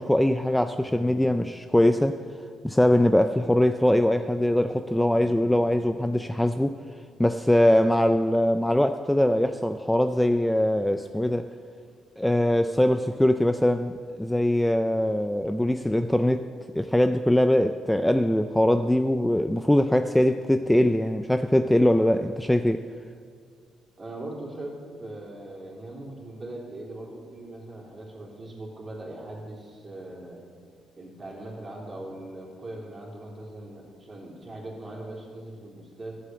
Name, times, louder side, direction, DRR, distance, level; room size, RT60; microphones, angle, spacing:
voice 1, 0.0-2.2 2.6-6.8 7.2-11.5 12.2-13.9 14.2-16.5 16.8-22.8, left 1 dB, 5° left, 9 dB, 0.4 m, -22 dB
voice 2, 24.0-30.5 31.0-36.2, right 1 dB, 30° right, -2 dB, 3.6 m, -40 dB
12.0 x 7.7 x 7.8 m, 2.1 s
cardioid pair, 90°, 0 cm